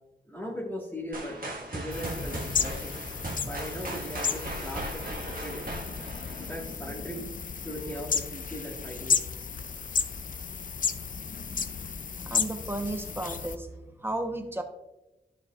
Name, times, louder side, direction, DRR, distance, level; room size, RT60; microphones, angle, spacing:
voice 1, 0.3-1.3 1.7-2.9 3.4-5.7 6.4-7.3 7.6-9.2, equal, 10° left, -4 dB, 1.5 m, -38 dB
sound 1, 1.1-7.0, right 1 dB, 50° right, 1.5 m, -38 dB
sound 2, 1.9-13.6, left 6 dB, 45° left, 0.4 m, -33 dB
voice 2, 12.3-13.7 14.0-14.6, right 2 dB, 10° right, 6 dB, 0.9 m, -33 dB
10.5 x 6.2 x 2.4 m, 0.97 s
cardioid pair, 60°, 19 cm